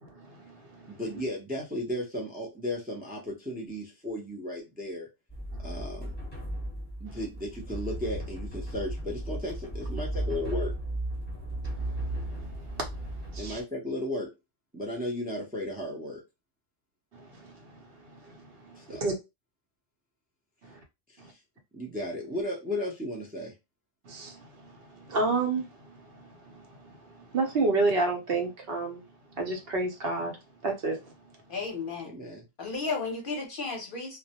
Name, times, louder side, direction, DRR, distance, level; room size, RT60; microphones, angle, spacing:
voice 1, 0.0-1.0 5.5-5.7 7.1-7.2 11.6-13.6 17.1-19.1 20.6-20.8 21.2-21.3 24.1-31.4, right 3 dB, 65° right, 0.8 m, -32 dB
voice 2, 0.9-5.1 5.6-6.1 7.0-10.7 13.4-14.3 14.7-16.2 18.7-19.0 21.2-21.4 21.7-23.5 32.0-32.4, left 1 dB, 10° right, 0.4 m, -35 dB
sound 1, 5.3-13.6, right 1 dB, 10° left, 1.0 m, -35 dB
voice 3, 31.5-32.1 32.6-34.2, left 4 dB, 55° left, 0.7 m, -33 dB
2.2 x 2.0 x 2.8 m
omnidirectional pair, 1.2 m